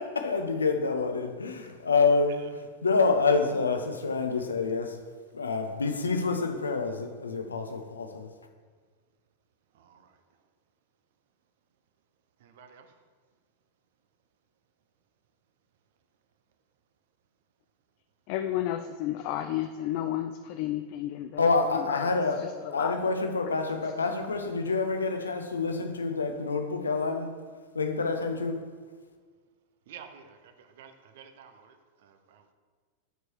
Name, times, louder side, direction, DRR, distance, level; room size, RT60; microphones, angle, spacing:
voice 1, 0.0-5.0 5.3-8.3 21.4-22.5 22.7-27.3 27.7-28.6, left 4 dB, 75° left, 6 dB, 0.7 m, -27 dB
voice 2, 18.3-22.1 22.4-23.0 23.4-23.5, left 12 dB, 45° left, 7 dB, 0.3 m, -32 dB
voice 3, 29.9-30.4 30.8-31.7, right 7 dB, 55° right, 8 dB, 0.7 m, -48 dB
8.0 x 4.6 x 4.7 m, 1.5 s
figure-of-eight pair, 90°, 0 cm